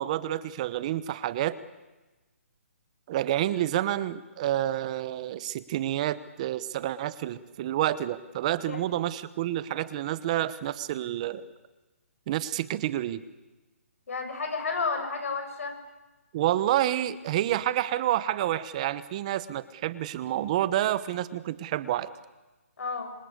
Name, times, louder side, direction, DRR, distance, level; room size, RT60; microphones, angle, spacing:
voice 1, 0.0-1.6 3.1-11.5 12.3-13.2 16.3-22.1, right 13 dB, 25° right, 16 dB, 1.0 m, -29 dB
voice 2, 14.1-15.8 22.8-23.1, left 4 dB, 65° left, 4 dB, 7.7 m, -31 dB
27.0 x 24.0 x 8.1 m, 1.1 s
hypercardioid pair, 165°, 8 cm